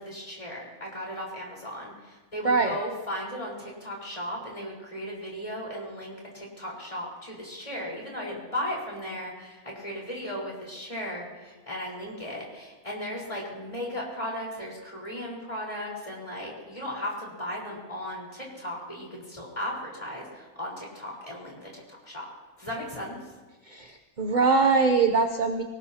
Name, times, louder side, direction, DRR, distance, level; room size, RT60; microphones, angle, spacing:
voice 1, 0.0-22.3 22.6-23.2, left 1 dB, 20° left, -3 dB, 4.8 m, -36 dB
voice 2, 2.4-2.8 23.7-25.6, right 4 dB, 40° right, 6 dB, 0.8 m, -23 dB
24.5 x 18.0 x 2.9 m, 1.2 s
omnidirectional pair, 1.5 m